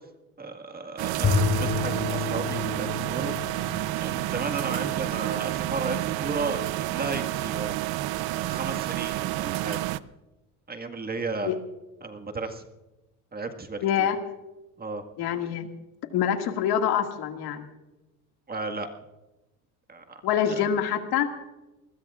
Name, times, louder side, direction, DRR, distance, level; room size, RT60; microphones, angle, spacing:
voice 1, 0.4-3.3 3.9-7.8 8.4-9.9 10.7-11.5 12.0-12.7 13.3-14.1 14.8-15.0 18.5-18.9 19.9-20.6, right 3 dB, 20° right, 5 dB, 1.8 m, -34 dB
sound 1, 1.0-10.0, right 16 dB, 65° right, 0.7 m, -30 dB
Bowed string instrument, 1.2-5.5, left 5 dB, 35° left, 2.8 m, -30 dB
voice 2, 13.8-14.2 15.2-15.7 16.1-17.7 20.2-21.3, left 9 dB, 65° left, 4 dB, 2.1 m, -25 dB
23.5 x 20.5 x 2.5 m, 1.0 s
supercardioid pair, 105°, 40 cm